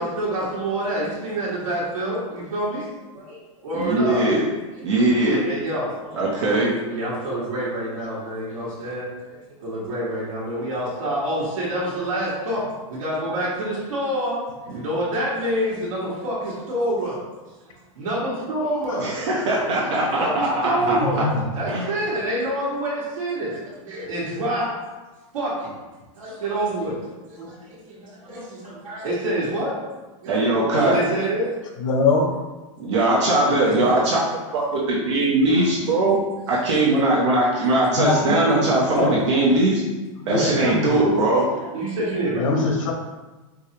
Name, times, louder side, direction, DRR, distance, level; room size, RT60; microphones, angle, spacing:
voice 1, 0.0-2.9 3.1-4.2 4.9-6.3 6.9-12.6 12.9-14.4 14.7-17.2 17.9-19.1 19.6-19.7 20.1-21.3 21.5-24.7 25.3-25.7 26.2-27.0 27.3-29.8 30.2-31.5 33.6-34.0 35.5-35.6 36.7-36.9 38.5-38.6 38.9-39.1 40.3-40.6 41.4-42.5, right 1 dB, 90° right, -6 dB, 1.4 m, -27 dB
voice 2, 3.7-4.5 4.8-5.4 6.1-6.7 19.0-21.3 21.7-21.8 30.3-31.0 32.8-34.2 34.5-36.2 36.5-39.0 39.3-39.8 40.2-41.5, right 2 dB, 60° right, -6 dB, 0.9 m, -20 dB
voice 3, 20.8-21.4 27.5-27.6 28.6-28.8 31.8-32.2 38.0-39.1 40.2-40.9 42.3-42.9, left 3 dB, 75° left, 1 dB, 0.8 m, -23 dB
4.8 x 2.3 x 2.9 m, 1.2 s
supercardioid pair, 170°, 17 cm